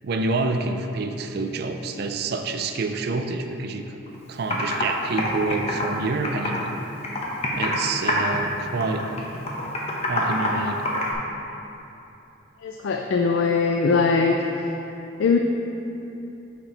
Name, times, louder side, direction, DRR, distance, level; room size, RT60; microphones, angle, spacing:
voice 1, 0.0-4.0 4.3-6.8 7.6-9.3 10.0-10.9, right 3 dB, 55° right, 6 dB, 0.4 m, -27 dB
Computer keyboard, 4.1-4.2 4.5-4.8 5.2-6.7 7.0-7.8 8.1-8.5 8.8-11.1, left 1 dB, 35° left, 0.8 m, -26 dB
voice 2, 12.6-14.3 15.2-15.4, left 5 dB, 75° left, 3 dB, 0.4 m, -21 dB
5.8 x 4.4 x 5.2 m, 2.9 s
head